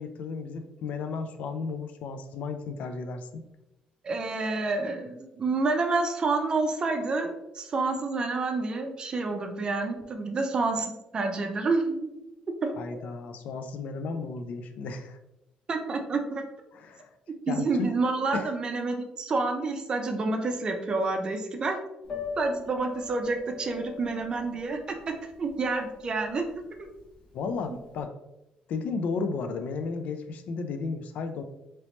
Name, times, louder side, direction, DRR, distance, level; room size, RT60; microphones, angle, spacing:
voice 1, 0.0-3.5 12.8-15.2 16.7-17.1 17.5-17.9 18.3-18.5 27.3-28.1 28.7-31.4, left 4 dB, 65° left, 7 dB, 0.4 m, -34 dB
voice 2, 4.0-12.1 12.6-13.0 15.7-16.4 17.5-21.8 22.4-26.5, right 3 dB, 30° right, 4 dB, 0.5 m, -29 dB
Piano, 22.0-28.0, left 6 dB, 45° left, 1.0 m, -41 dB
3.0 x 2.9 x 3.0 m, 0.92 s
cardioid pair, 140°, 3 cm